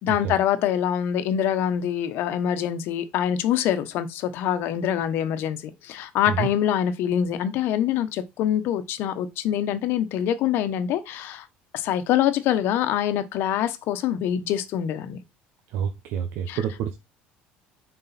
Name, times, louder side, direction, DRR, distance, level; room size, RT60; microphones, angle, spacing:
voice 1, 0.0-11.5 11.7-15.2 16.5-16.6, left 10 dB, 65° left, 1.1 m, -25 dB
voice 2, 15.7-17.0, right 8 dB, 70° right, 1.0 m, -28 dB
7.1 x 4.6 x 4.3 m
cardioid pair, 130°, 4 cm